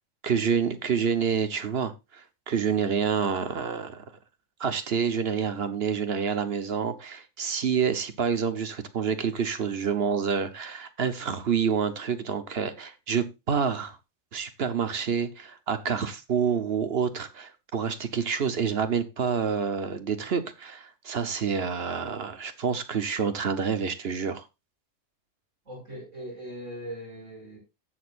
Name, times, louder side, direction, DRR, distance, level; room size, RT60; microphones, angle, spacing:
voice 1, 0.2-4.0 4.6-14.0 14.3-24.5, right 6 dB, 55° right, 1.1 m, -28 dB
voice 2, 25.6-27.6, equal, 70° right, 6.1 m, -40 dB
17.0 x 6.5 x 2.5 m
omnidirectional pair, 1.3 m